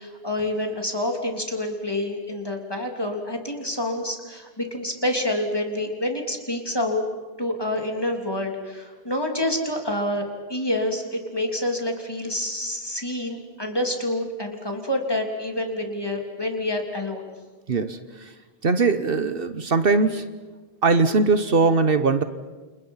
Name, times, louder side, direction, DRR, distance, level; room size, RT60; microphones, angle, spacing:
voice 1, 0.0-7.0 7.4-17.2, left 1 dB, 25° left, 2 dB, 3.5 m, -27 dB
voice 2, 17.7-18.0 18.6-20.3 20.8-22.2, right 4 dB, 65° right, 11 dB, 1.3 m, -20 dB
29.5 x 29.0 x 5.8 m, 1.3 s
omnidirectional pair, 1.0 m